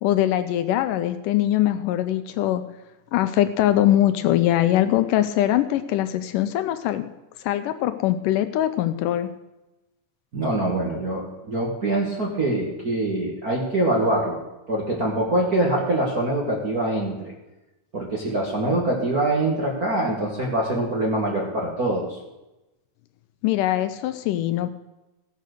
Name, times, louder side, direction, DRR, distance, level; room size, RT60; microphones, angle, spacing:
voice 1, 0.0-2.6 3.1-7.1 7.4-9.3 23.4-24.7, left 13 dB, 80° left, 10 dB, 2.1 m, -22 dB
voice 2, 10.3-14.4 14.7-17.3 17.9-22.2, right 1 dB, 40° right, -2 dB, 1.4 m, -24 dB
16.0 x 6.6 x 6.6 m, 1.0 s
omnidirectional pair, 3.9 m